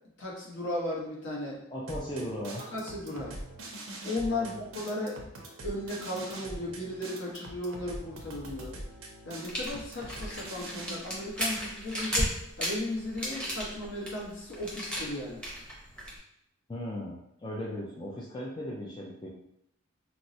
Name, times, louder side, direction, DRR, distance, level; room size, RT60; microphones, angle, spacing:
voice 1, 0.2-1.6 2.7-3.4 4.0-5.2 5.6-8.8 9.2-12.3 12.6-15.4, left 1 dB, 60° left, -3 dB, 0.9 m, -35 dB
voice 2, 1.7-2.7 4.3-4.6 16.7-19.3, equal, 20° left, -4 dB, 0.4 m, -37 dB
sound 1, 1.9-10.9, right 1 dB, 80° right, 0.6 m, -43 dB
sound 2, 9.4-16.2, equal, 5° left, 0.8 m, -34 dB
4.4 x 2.0 x 2.6 m, 0.77 s
head